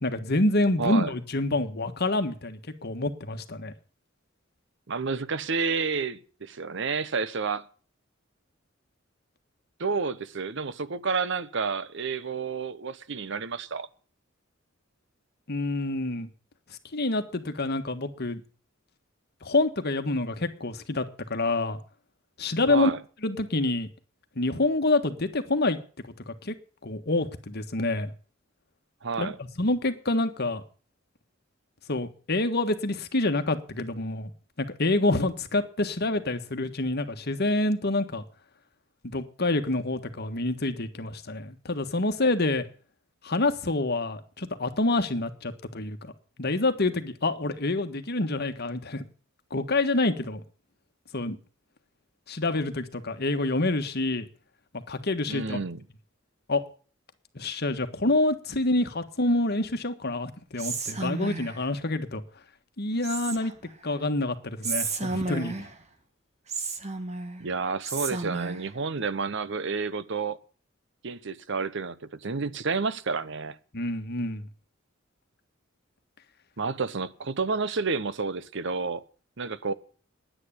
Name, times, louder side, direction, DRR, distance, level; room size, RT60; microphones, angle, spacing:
voice 1, 0.0-3.7 15.5-16.3 16.9-18.4 19.4-21.0 21.3-21.8 22.4-22.9 23.2-23.9 24.4-25.8 26.3-26.5 26.8-28.1 29.2-30.6 31.9-34.3 34.6-38.2 39.0-42.7 43.2-46.1 46.4-49.1 49.5-50.4 51.1-51.4 52.3-54.3 54.7-55.6 56.5-56.6 57.3-62.2 62.8-63.5 63.8-65.7 73.7-74.5, left 2 dB, 55° left, 1.5 m, -27 dB
voice 2, 0.8-1.1 4.9-7.7 9.8-13.9 22.7-23.0 29.0-29.4 55.3-55.8 67.4-70.4 71.0-73.6 76.6-79.0 79.4-79.7, right 4 dB, 65° right, 0.9 m, -30 dB
Whispering, 60.6-61.7 63.0-63.7 64.6-65.8 66.5-67.4 67.8-68.7, right 4 dB, 35° right, 1.7 m, -32 dB
10.0 x 9.7 x 9.9 m
head